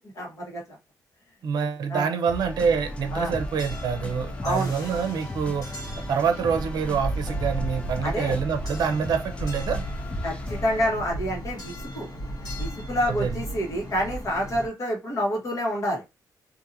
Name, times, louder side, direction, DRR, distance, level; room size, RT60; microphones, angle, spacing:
voice 1, 0.1-0.8 1.9-2.1 3.1-3.3 4.4-4.7 8.0-8.4 10.2-12.1 12.6-16.0, equal, 45° left, 1.3 m, -28 dB
voice 2, 1.4-5.7 6.1-9.8 13.1-13.4, right 6 dB, 75° right, 0.6 m, -26 dB
sound 1, 2.3-10.9, left 2 dB, 15° left, 0.4 m, -37 dB
sound 2, 2.6-14.7, right 1 dB, 70° left, 1.2 m, -35 dB
2.8 x 2.6 x 2.6 m
cardioid pair, 135°, 7 cm